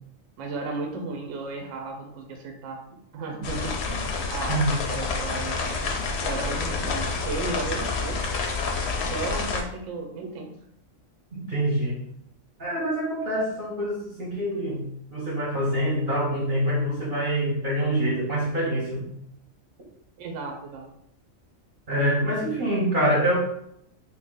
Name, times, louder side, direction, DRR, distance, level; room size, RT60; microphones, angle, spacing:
voice 1, 0.4-2.8 3.1-8.2 8.9-10.5 20.2-20.8, right 3 dB, 70° right, 2 dB, 0.9 m, -34 dB
sound 1, 3.4-9.6, left 4 dB, 65° left, 0.7 m, -28 dB
voice 2, 11.3-12.0 12.6-19.1 21.9-23.4, right 1 dB, 45° right, -5 dB, 0.9 m, -25 dB
2.9 x 2.5 x 3.6 m, 0.76 s
omnidirectional pair, 1.4 m